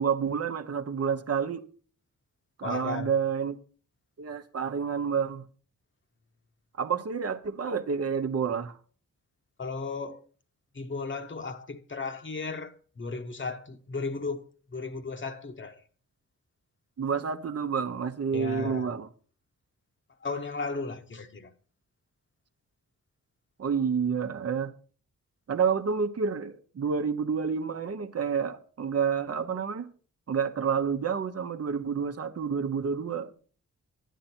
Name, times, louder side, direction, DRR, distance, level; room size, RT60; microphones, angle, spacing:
voice 1, 0.0-1.7 2.6-3.6 4.2-5.5 6.8-8.8 17.0-19.1 23.6-24.7 25.5-29.9 30.3-33.5, right 6 dB, 50° right, 0.9 m, -29 dB
voice 2, 2.6-3.2 9.6-10.2 10.7-14.4 14.7-15.8 18.3-18.9 20.2-21.5, left 4 dB, 35° left, 1.1 m, -35 dB
11.5 x 10.0 x 4.4 m
wide cardioid pair, 130°, 32 cm